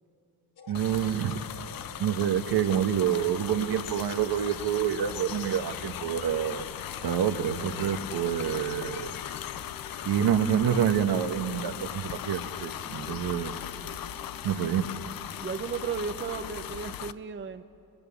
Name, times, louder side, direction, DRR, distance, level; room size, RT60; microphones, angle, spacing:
sound 1, 0.6-16.9, left 4 dB, 70° left, 2.8 m, -49 dB
sound 2, 0.7-17.1, left 11 dB, 55° left, 0.8 m, -38 dB
voice 1, 0.7-1.4 2.0-6.6 7.0-9.1 10.0-13.5 14.4-14.9, right 9 dB, 65° right, 7 dB, 1.4 m, -27 dB
voice 2, 15.4-17.6, right 6 dB, 25° right, 9 dB, 0.8 m, -34 dB
29.5 x 21.5 x 7.1 m, 2.6 s
cardioid pair, 100°, 42 cm